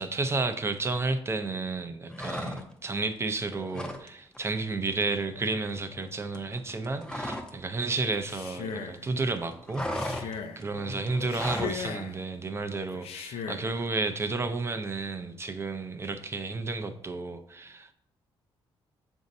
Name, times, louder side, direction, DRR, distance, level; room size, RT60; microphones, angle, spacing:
voice 1, 0.0-17.9, right 3 dB, 25° right, 8 dB, 0.5 m, -32 dB
sound 1, 2.1-2.9 3.2-4.1 4.3-4.6 4.9-7.6 7.9-9.0 9.2-11.8, left 1 dB, 10° left, 0.7 m, -36 dB
Male speech man speaking, 8.1-9.0 9.8-10.6 11.2-12.2 12.9-13.7, left 7 dB, 80° left, 0.6 m, -38 dB
7.0 x 2.7 x 5.2 m, 0.70 s
cardioid pair, 110°, 10 cm